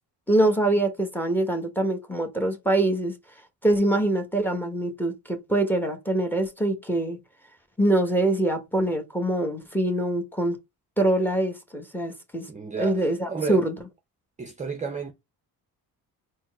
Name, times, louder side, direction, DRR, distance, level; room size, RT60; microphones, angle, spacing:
voice 1, 0.3-3.1 3.6-7.2 7.8-10.6 11.0-12.5 12.8-13.7, right 1 dB, 5° left, 1.1 m, -24 dB
voice 2, 12.5-13.0 13.3-13.6 14.4-15.1, right 4 dB, 20° right, 0.6 m, -32 dB
4.4 x 2.1 x 4.5 m
cardioid pair, 100°, 39 cm